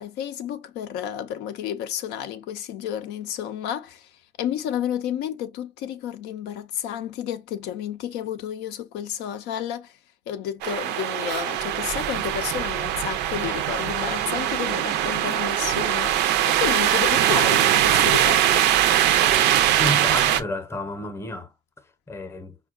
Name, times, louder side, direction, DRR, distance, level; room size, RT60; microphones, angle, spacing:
voice 1, 0.0-10.0 10.3-18.7, left 10 dB, 85° left, 0.5 m, -31 dB
sound 1, 10.6-20.4, right 11 dB, 80° right, 0.4 m, -21 dB
voice 2, 19.8-21.5 22.1-22.6, left 1 dB, 15° left, 0.7 m, -31 dB
4.5 x 2.2 x 2.3 m
cardioid pair, 110°, 17 cm